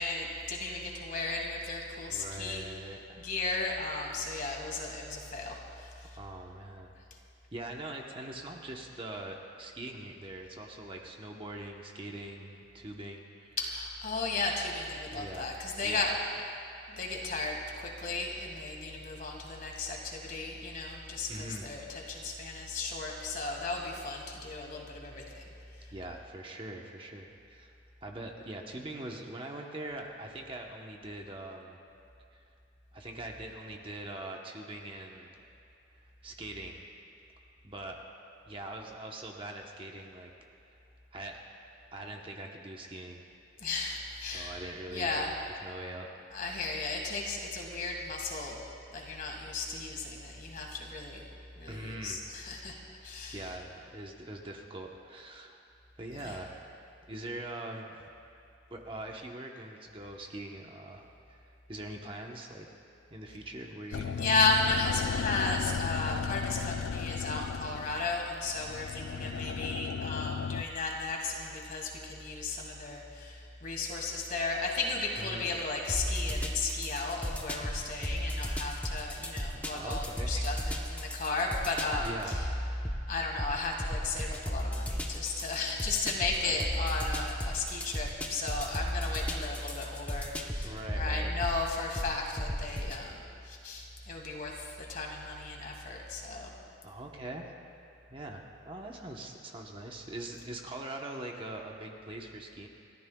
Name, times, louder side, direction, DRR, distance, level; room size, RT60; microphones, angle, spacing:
voice 1, 0.0-2.6 3.2-6.2 13.6-16.1 16.9-25.4 43.6-44.6 44.9-45.3 46.3-48.6 48.9-51.3 51.6-52.7 53.0-53.5 56.2-56.4 64.2-82.5 83.1-96.5, left 3 dB, 45° left, 0 dB, 1.8 m, -34 dB
voice 2, 2.1-3.3 6.1-6.9 7.5-13.6 15.1-16.3 16.8-17.0 21.3-21.7 25.9-27.8 28.0-31.8 32.3-32.4 32.9-35.3 35.9-36.8 37.6-38.0 38.4-40.3 40.7-40.8 41.1-41.4 41.9-43.2 44.2-45.3 45.6-46.1 51.7-52.2 53.3-55.6 56.0-56.7 57.1-58.0 58.7-61.4 61.7-62.7 63.1-64.3 69.1-69.6 75.2-75.6 79.7-81.1 82.0-82.5 86.4-86.7 90.6-91.4 96.8-97.6 98.1-102.7, right 1 dB, 25° right, 1 dB, 0.9 m, -43 dB
sound 1, 63.9-70.6, left 6 dB, 75° left, 0.3 m, -35 dB
sound 2, 75.9-93.0, equal, 10° left, 0.8 m, -35 dB
29.5 x 13.5 x 2.3 m, 2.6 s
head